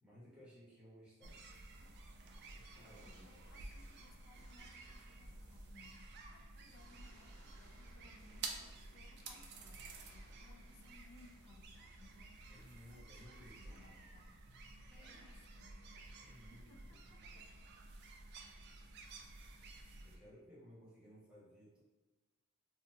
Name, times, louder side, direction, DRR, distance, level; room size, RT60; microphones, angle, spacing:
voice 1, 0.0-1.4 2.5-3.3 12.5-14.1 14.9-15.4 16.2-17.1 20.0-21.8, equal, 5° right, -8 dB, 0.8 m, -60 dB
sound 1, 1.2-20.2, right 3 dB, 50° right, 0.3 m, -53 dB
sound 2, 2.5-6.2 6.5-12.3 12.5-14.2 15.3-16.0, right 1 dB, 80° right, 0.7 m, -70 dB
voice 2, 2.7-12.5 12.9-14.4 15.2-15.9 16.3-17.5, left 3 dB, 60° left, 4 dB, 0.3 m, -65 dB
2.7 x 2.2 x 2.7 m, 1.2 s
head